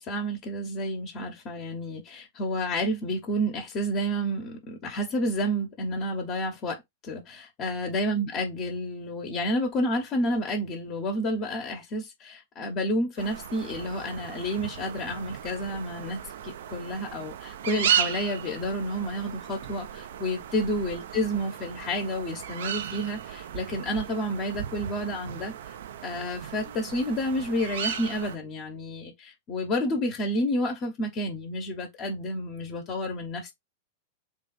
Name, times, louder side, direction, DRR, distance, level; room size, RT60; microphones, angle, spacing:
voice 1, 0.0-25.5 26.0-33.5, equal, 40° left, 1.1 m, -30 dB
sound 1, 13.2-28.4, right 9 dB, 70° right, 0.5 m, -35 dB
3.5 x 2.5 x 4.1 m
hypercardioid pair, 100°, 0 cm